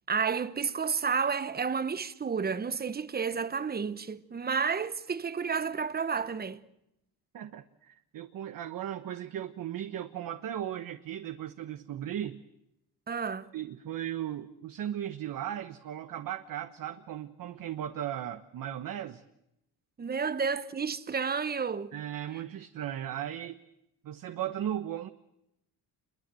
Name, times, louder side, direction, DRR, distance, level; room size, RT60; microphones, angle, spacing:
voice 1, 0.1-6.6 13.1-13.5 20.0-21.9, right 5 dB, 25° right, 1.1 m, -31 dB
voice 2, 7.3-12.4 13.5-19.2 21.9-23.6 24.0-25.1, right 11 dB, 60° right, 1.3 m, -37 dB
28.0 x 22.5 x 7.8 m
cardioid pair, 120°, 37 cm